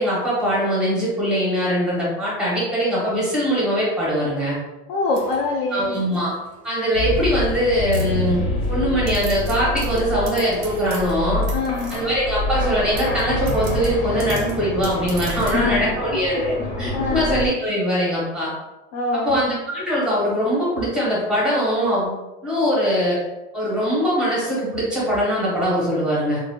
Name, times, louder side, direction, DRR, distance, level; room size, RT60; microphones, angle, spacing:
voice 1, 0.0-4.5 5.7-6.3 6.6-8.4 8.7-11.5 11.9-18.5 19.1-22.1 22.4-23.2 23.5-26.4, equal, ahead, -7 dB, 0.7 m, -22 dB
voice 2, 4.9-6.0 11.5-11.9 15.4-16.0 16.4-17.3 18.9-19.3, left 3 dB, 50° left, -2 dB, 0.5 m, -25 dB
sound 1, 5.1-6.7 7.2-7.6 7.9-8.7 9.1-12.3 12.9-15.7, right 4 dB, 30° right, 0.4 m, -40 dB
sound 2, 6.9-17.5, left 1 dB, 80° left, 0.8 m, -27 dB
3.8 x 2.1 x 2.2 m, 1.0 s
supercardioid pair, 170°, 37 cm